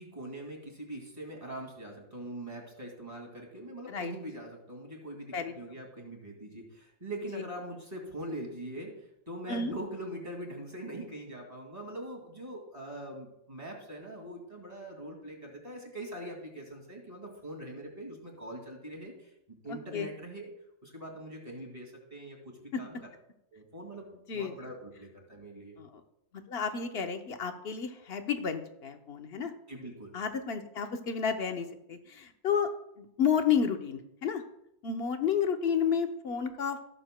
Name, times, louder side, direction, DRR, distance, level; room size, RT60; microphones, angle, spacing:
voice 1, 0.0-20.5 20.8-23.1 23.5-25.8 29.7-30.1, right 1 dB, 35° right, 0 dB, 2.4 m, -42 dB
voice 2, 26.5-29.5 30.1-32.7 33.0-34.4 34.8-36.8, left 7 dB, 65° left, 6 dB, 1.1 m, -31 dB
17.5 x 6.9 x 2.2 m, 0.78 s
omnidirectional pair, 1.2 m